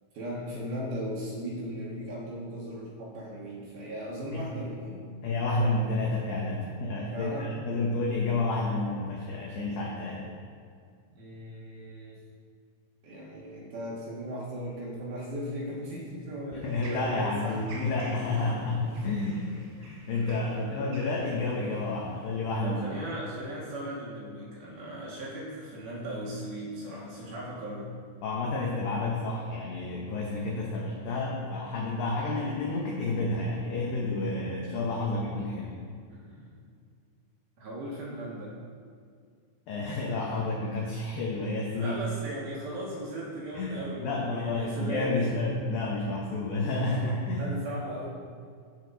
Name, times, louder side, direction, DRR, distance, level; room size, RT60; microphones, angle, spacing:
voice 1, 0.1-5.1 7.1-7.6 11.1-12.2 13.0-17.6 17.9-18.0 18.3-19.1 20.2-20.8 22.6-27.9 36.1-36.6 37.6-38.6 41.7-45.4 47.3-48.1, equal, 65° right, -5 dB, 2.7 m, -38 dB
voice 2, 5.2-10.2 16.5-22.8 28.2-35.7 39.7-41.9 43.5-43.8 44.0-47.5, left 2 dB, 85° left, -2 dB, 2.0 m, -30 dB
sound 1, 16.6-22.3, right 2 dB, 80° right, 4.1 m, -48 dB
14.5 x 5.1 x 3.9 m, 2.2 s
omnidirectional pair, 5.4 m